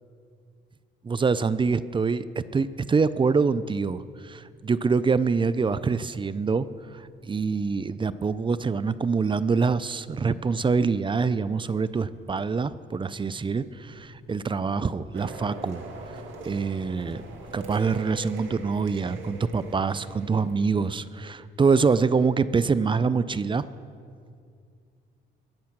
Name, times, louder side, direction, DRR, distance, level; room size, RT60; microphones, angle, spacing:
voice 1, 1.0-15.8 16.1-17.2 17.5-23.6, right 5 dB, 25° right, 15 dB, 0.5 m, -25 dB
sound 1, 2.5-21.1, left 2 dB, 50° left, 2.3 m, -51 dB
sound 2, 15.1-21.3, right 4 dB, 80° right, 2.0 m, -43 dB
21.0 x 7.4 x 6.0 m, 2.4 s
cardioid pair, 90°, 20 cm